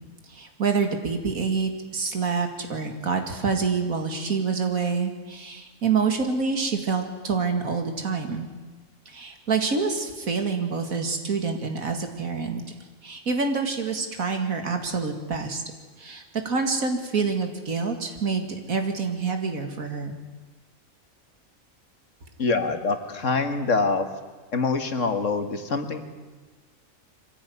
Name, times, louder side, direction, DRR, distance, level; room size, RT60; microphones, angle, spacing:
voice 1, 0.3-8.5 9.1-12.6 13.0-15.6 16.0-20.2, right 5 dB, 80° right, 5 dB, 2.7 m, -27 dB
voice 2, 22.4-24.1 24.5-26.0, left 4 dB, 65° left, 7 dB, 2.0 m, -25 dB
23.5 x 15.5 x 9.4 m, 1.3 s
omnidirectional pair, 1.4 m